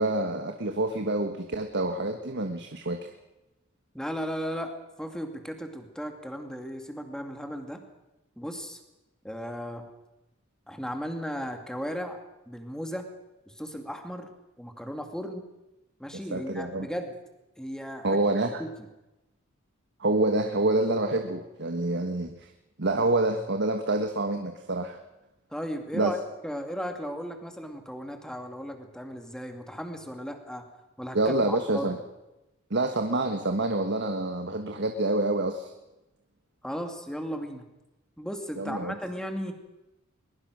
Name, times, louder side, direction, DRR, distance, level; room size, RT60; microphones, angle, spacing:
voice 1, 0.0-3.0 16.3-16.9 18.0-18.6 20.0-22.5 22.8-25.0 25.9-26.1 31.1-32.0 32.7-35.7 38.6-39.0, right 2 dB, 60° right, 5 dB, 1.5 m, -27 dB
voice 2, 3.9-7.8 8.4-8.8 9.2-9.8 10.7-13.0 13.5-14.3 14.6-15.4 16.0-17.2 17.6-18.2 18.6-18.7 25.5-26.2 26.4-30.7 31.0-32.0 36.6-37.6 38.2-39.5, equal, 5° left, 5 dB, 2.4 m, -36 dB
21.5 x 21.5 x 6.3 m, 0.98 s
head